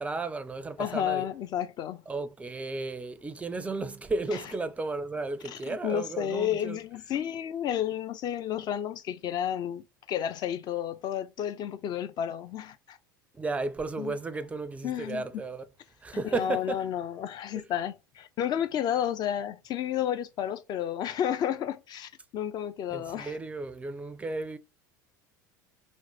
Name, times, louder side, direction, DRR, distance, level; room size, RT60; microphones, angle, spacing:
voice 1, 0.0-1.3 2.1-6.8 13.3-15.6 16.0-16.8 17.6-17.7 22.9-24.6, right 3 dB, 10° right, 0.4 m, -34 dB
voice 2, 0.8-2.0 4.3-4.4 5.5-13.0 14.0-14.1 14.8-15.2 16.3-23.4, left 10 dB, 40° left, 0.5 m, -31 dB
3.0 x 2.1 x 3.8 m
figure-of-eight pair, 75°, 11 cm